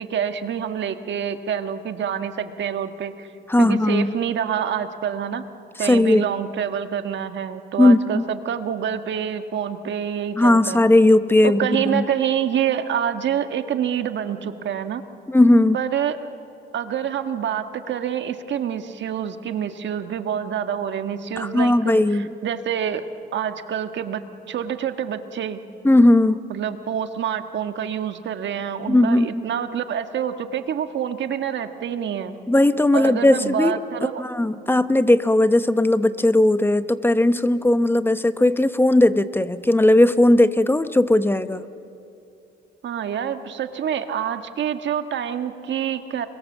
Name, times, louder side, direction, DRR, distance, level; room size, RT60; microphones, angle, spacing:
voice 1, 0.0-3.3 3.6-5.4 5.8-10.8 11.4-15.0 15.7-16.2 16.7-23.0 23.3-25.6 26.5-32.4 32.9-34.2 42.8-46.3, right 9 dB, 65° right, 8 dB, 1.5 m, -27 dB
voice 2, 3.5-4.1 5.8-6.3 7.8-8.2 10.3-12.0 15.3-15.8 21.4-22.3 25.8-26.5 28.9-29.4 32.5-33.8 34.2-41.6, left 1 dB, 10° left, 12 dB, 0.9 m, -17 dB
30.0 x 22.5 x 7.3 m, 2.6 s
cardioid pair, 90°, 20 cm